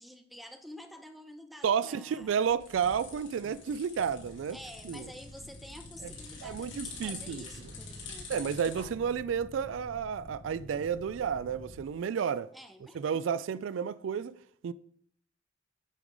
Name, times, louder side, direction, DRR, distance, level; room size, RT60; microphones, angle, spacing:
voice 1, 0.0-2.4 4.5-8.3 12.5-13.0, equal, ahead, 0.7 m, -49 dB
voice 2, 1.6-4.6 4.8-5.1 6.0-6.1 6.4-7.5 8.3-12.5 12.9-14.4 14.6-14.7, right 7 dB, 90° right, 0.3 m, -31 dB
sound 1, 2.1-8.8, left 4 dB, 70° left, 2.6 m, -47 dB
sound 2, 4.0-11.8, left 1 dB, 50° left, 0.9 m, -50 dB
8.5 x 5.3 x 4.8 m
head